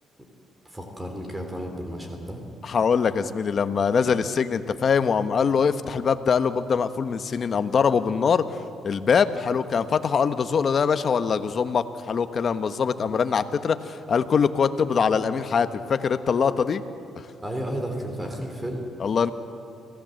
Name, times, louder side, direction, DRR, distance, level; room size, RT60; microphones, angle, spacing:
voice 1, 0.6-2.4 17.4-18.9, right 1 dB, 15° right, 3 dB, 3.3 m, -32 dB
voice 2, 2.6-8.5 8.8-16.8 19.0-19.3, left 6 dB, 50° left, 11 dB, 1.1 m, -23 dB
25.5 x 16.5 x 7.8 m, 2.6 s
cardioid pair, 90°, 0 cm